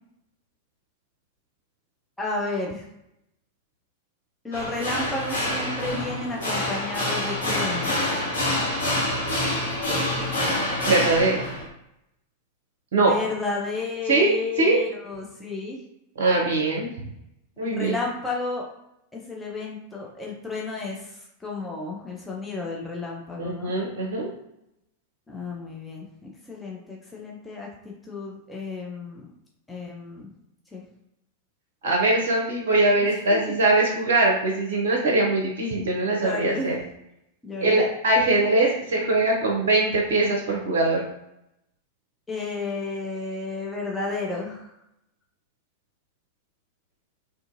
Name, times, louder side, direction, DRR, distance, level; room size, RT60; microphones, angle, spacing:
voice 1, 2.2-2.8 4.4-8.3 12.9-15.8 17.6-18.6 19.1-23.7 25.3-29.3 29.7-30.3 30.7-30.8 33.5-33.6 36.2-36.8 37.4-37.8 42.3-44.7, left 3 dB, 10° left, -3 dB, 0.5 m, -32 dB
sound 1, 4.5-11.6, left 1 dB, 70° left, 1.2 m, -26 dB
voice 2, 10.9-11.4 12.9-13.1 14.1-14.8 16.2-16.9 17.6-18.0 23.4-24.3 31.8-36.8 37.6-41.0, right 2 dB, 60° right, -1 dB, 0.6 m, -22 dB
2.6 x 2.5 x 2.5 m, 0.83 s
figure-of-eight pair, 90°, 0 cm